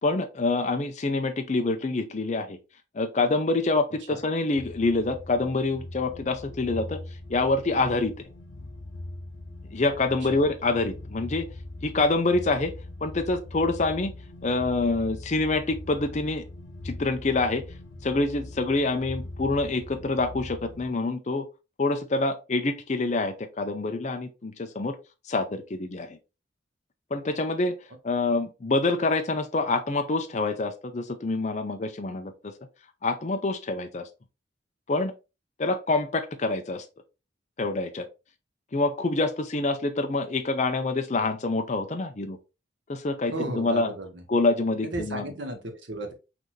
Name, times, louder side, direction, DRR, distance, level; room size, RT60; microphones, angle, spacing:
voice 1, 0.0-2.6 2.9-7.0 7.3-8.1 9.7-11.5 11.8-12.7 13.0-14.1 14.4-16.4 16.8-17.6 18.0-21.5 21.8-25.0 25.2-26.2 27.1-27.8 28.0-32.5 33.0-34.1 34.9-35.1 35.6-36.9 37.6-38.1 38.7-42.4 42.9-43.9 44.3-45.2, left 3 dB, 35° left, 6 dB, 0.5 m, -26 dB
sound 1, 4.6-20.9, left 2 dB, 80° left, 0.7 m, -41 dB
voice 2, 43.3-44.2 44.8-46.1, right 1 dB, 75° right, 4 dB, 1.2 m, -34 dB
5.9 x 2.7 x 3.1 m, 0.29 s
head